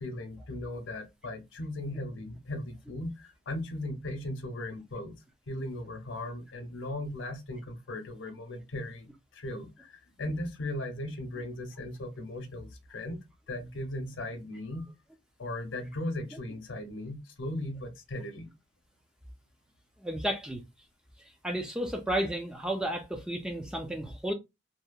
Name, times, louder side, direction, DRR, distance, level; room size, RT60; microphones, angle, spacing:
voice 1, 0.0-5.1 5.5-13.2 13.5-14.9 15.4-18.5, left 1 dB, 75° left, 0.6 m, -37 dB
voice 2, 20.0-20.6 21.2-24.3, right 1 dB, 5° right, 0.3 m, -32 dB
2.7 x 2.0 x 2.2 m
head